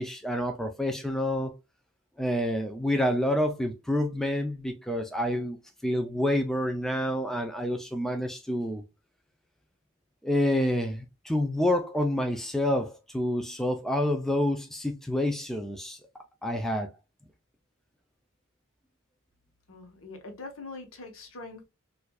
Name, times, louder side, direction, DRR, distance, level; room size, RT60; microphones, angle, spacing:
voice 1, 0.0-1.5 2.2-5.6 5.8-8.8 10.2-16.0 16.4-16.9, left 1 dB, ahead, 0.4 m, -28 dB
voice 2, 19.7-21.6, left 3 dB, 70° left, 1.0 m, -43 dB
4.4 x 2.5 x 2.2 m
head